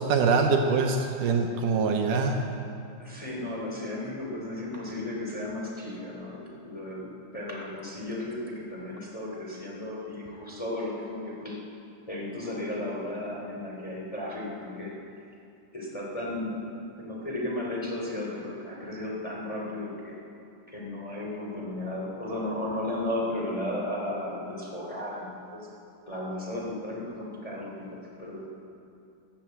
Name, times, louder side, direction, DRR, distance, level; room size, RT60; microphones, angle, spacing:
voice 1, 0.0-2.4, right 4 dB, 75° right, 3 dB, 2.5 m, -24 dB
voice 2, 3.0-11.6 12.1-14.9 15.7-16.6 17.0-20.2 20.7-25.7 26.1-28.5, left 1 dB, 10° left, -3 dB, 2.7 m, -34 dB
16.0 x 11.0 x 7.7 m, 2.6 s
omnidirectional pair, 3.9 m